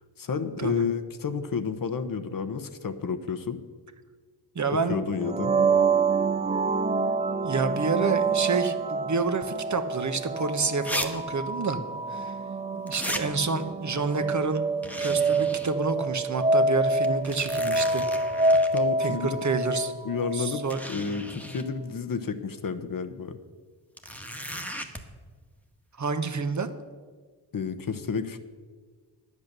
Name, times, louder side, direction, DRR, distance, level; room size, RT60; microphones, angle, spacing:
voice 1, 0.2-3.6 4.9-5.5 18.7-19.4 20.0-23.4 27.5-28.4, left 5 dB, 45° left, 9 dB, 1.0 m, -31 dB
voice 2, 4.5-5.0 7.4-11.8 12.1-12.3 12.7-14.6 15.0-18.0 19.0-19.9 20.3-20.8 26.0-26.7, right 4 dB, 40° right, 8 dB, 1.1 m, -28 dB
sound 1, 5.2-20.9, right 3 dB, 15° right, 0.5 m, -27 dB
sound 2, 10.1-10.2 10.8-11.1 11.3-11.4 12.9-13.2 14.8-15.7 16.2-16.3 17.0-18.8 19.9-20.0 20.7-21.6 24.0-25.0, equal, 5° left, 1.4 m, -35 dB
10.5 x 8.3 x 6.7 m, 1.5 s
cardioid pair, 65°, 45 cm